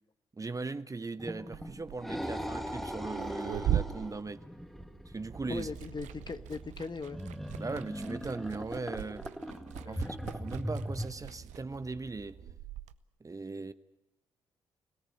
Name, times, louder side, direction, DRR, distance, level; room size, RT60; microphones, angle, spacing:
voice 1, 0.4-4.4 5.1-5.7 7.6-9.2 9.9-12.4 13.2-13.7, right 3 dB, 25° right, 1.0 m, -39 dB
sound 1, 1.2-11.1, equal, ahead, 2.1 m, -40 dB
Liquid, 1.4-5.1 5.4-12.9, right 12 dB, 75° right, 0.8 m, -39 dB
sound 2, 5.3-12.6, right 6 dB, 55° right, 1.8 m, -52 dB
voice 2, 5.5-7.2 9.8-10.1, left 4 dB, 35° left, 1.3 m, -40 dB
25.0 x 17.5 x 8.6 m
hypercardioid pair, 45°, 12 cm